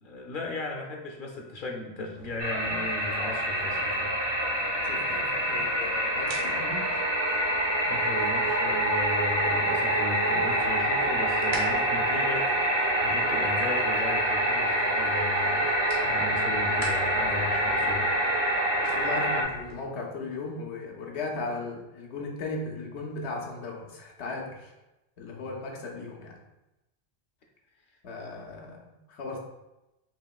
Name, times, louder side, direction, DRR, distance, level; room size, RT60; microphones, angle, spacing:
voice 1, 0.0-4.1 7.8-12.5 12.8-15.7 16.0-18.1 28.3-28.8, left 2 dB, 60° left, 1 dB, 0.7 m, -36 dB
sound 1, 2.1-19.8, right 2 dB, 55° right, 1.1 m, -46 dB
sound 2, 2.4-19.4, right 1 dB, 30° right, 0.6 m, -26 dB
voice 2, 4.8-7.0 18.9-24.7 25.2-26.4 28.0-29.4, left 3 dB, 90° left, 0 dB, 1.0 m, -37 dB
5.3 x 2.8 x 2.3 m, 0.98 s
omnidirectional pair, 1.1 m